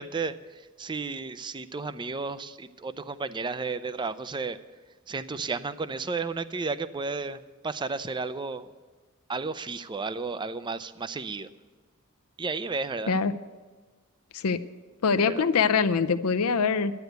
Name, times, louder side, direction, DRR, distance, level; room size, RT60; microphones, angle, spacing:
voice 1, 0.0-4.6 5.1-8.7 9.3-11.5 12.4-13.1 15.3-15.5, right 4 dB, 20° right, 14 dB, 0.5 m, -33 dB
voice 2, 15.0-16.9, left 5 dB, 85° left, 10 dB, 0.6 m, -23 dB
12.0 x 9.3 x 8.0 m, 1.3 s
head